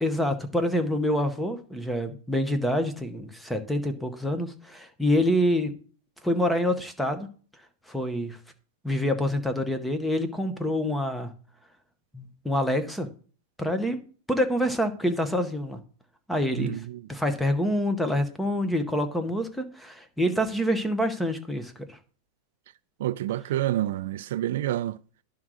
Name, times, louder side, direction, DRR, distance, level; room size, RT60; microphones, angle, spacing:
voice 1, 0.0-5.7 6.2-7.3 7.9-8.4 8.8-11.3 12.1-13.1 13.6-14.0 14.3-15.8 16.3-16.8 17.1-22.0, equal, 5° left, 0.8 m, -26 dB
voice 2, 16.6-17.0 23.0-25.0, right 13 dB, 70° right, 0.3 m, -28 dB
10.5 x 3.7 x 6.2 m
supercardioid pair, 160°, 0 cm